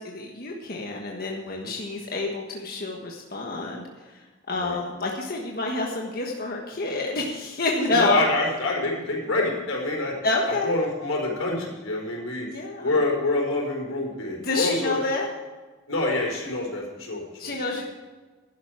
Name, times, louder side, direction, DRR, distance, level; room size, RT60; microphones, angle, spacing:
voice 1, 0.0-8.3 10.2-10.8 12.5-13.0 14.4-15.3 17.4-17.9, left 3 dB, 45° left, 0 dB, 1.4 m, -28 dB
voice 2, 7.9-10.1 10.6-12.5 12.8-15.0 15.9-17.6, left 2 dB, 90° left, -1 dB, 4.6 m, -27 dB
12.0 x 10.5 x 4.9 m, 1.3 s
head